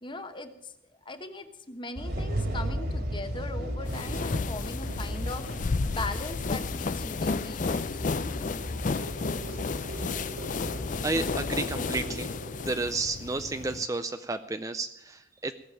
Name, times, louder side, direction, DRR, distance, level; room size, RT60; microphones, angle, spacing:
voice 1, 0.0-0.7 1.0-8.0, left 3 dB, 25° left, 8 dB, 1.1 m, -40 dB
sound 1, 1.9-12.2, equal, 55° right, 2.5 m, -36 dB
sound 2, 3.9-13.9, left 4 dB, 40° left, 0.4 m, -32 dB
sound 3, 7.9-12.8, right 1 dB, 85° right, 2.8 m, -43 dB
voice 2, 9.8-10.1 11.0-12.3 12.6-15.5, right 3 dB, 15° right, 9 dB, 0.4 m, -32 dB
17.5 x 7.3 x 8.8 m, 0.84 s
head